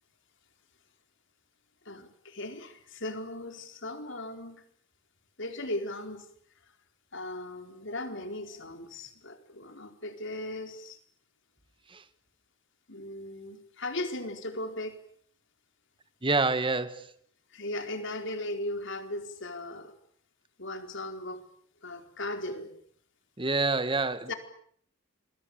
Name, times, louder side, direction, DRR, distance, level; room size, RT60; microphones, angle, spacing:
voice 1, 1.8-4.6 5.4-6.3 7.1-11.0 12.9-15.0 17.5-19.9 20.6-21.4 21.8-22.7 24.3-24.4, left 1 dB, 60° left, 4.5 m, -37 dB
voice 2, 16.2-17.1 23.4-24.3, right 3 dB, 25° right, 1.5 m, -27 dB
28.5 x 22.0 x 8.6 m
head